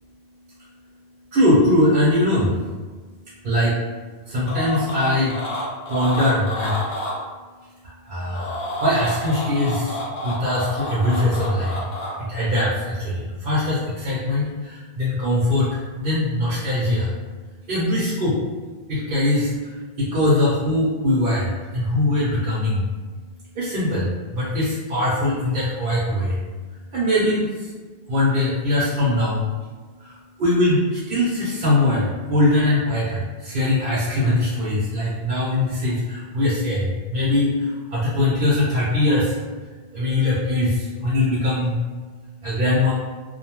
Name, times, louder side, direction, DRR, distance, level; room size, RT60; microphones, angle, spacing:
voice 1, 1.3-2.5 3.4-3.7 4.3-5.3 5.9-6.7 8.1-8.5 8.8-9.9 10.2-11.7 12.3-12.7 13.0-14.5 15.0-15.7 16.0-17.1 17.7-18.4 18.9-19.5 20.0-21.5 21.7-22.8 23.6-24.0 24.3-26.3 26.9-27.4 28.1-29.4 30.4-33.2 33.5-36.0 36.3-36.9 37.1-37.5 37.9-39.2 39.9-40.7 41.0-41.8 42.4-42.9, left 1 dB, 60° right, -7 dB, 0.8 m, -21 dB
sound 1, 4.5-7.2 8.1-12.1, left 1 dB, 55° left, 0.6 m, -29 dB
2.5 x 2.2 x 2.8 m, 1.4 s
omnidirectional pair, 1.1 m